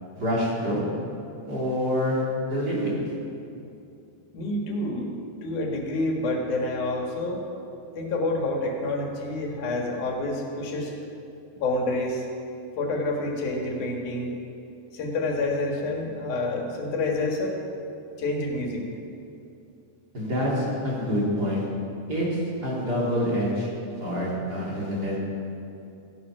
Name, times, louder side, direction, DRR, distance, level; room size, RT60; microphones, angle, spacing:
voice 1, 0.1-0.8 1.5-2.2 2.5-2.9 20.1-21.7 22.1-23.7 24.0-25.2, equal, 35° right, -5 dB, 3.1 m, -26 dB
voice 2, 4.3-5.1 5.4-7.4 7.9-10.9 11.6-12.2 12.8-14.3 14.9-17.5 18.2-18.9, left 2 dB, 85° left, 0 dB, 3.2 m, -28 dB
15.0 x 11.0 x 6.1 m, 2.7 s
omnidirectional pair, 3.4 m